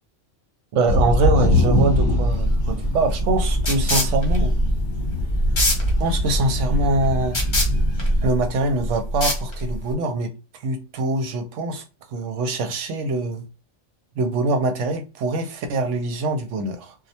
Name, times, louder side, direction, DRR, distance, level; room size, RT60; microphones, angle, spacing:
voice 1, 0.7-4.5 6.0-7.4 8.2-10.3 10.6-11.8 12.1-13.4 14.2-16.9, right 2 dB, 80° right, 0.9 m, -24 dB
sound 1, 0.9-8.3, left 1 dB, 50° left, 1.0 m, -22 dB
sound 2, 2.3-9.9, equal, 30° left, 0.6 m, -24 dB
2.3 x 2.1 x 2.7 m
omnidirectional pair, 1.3 m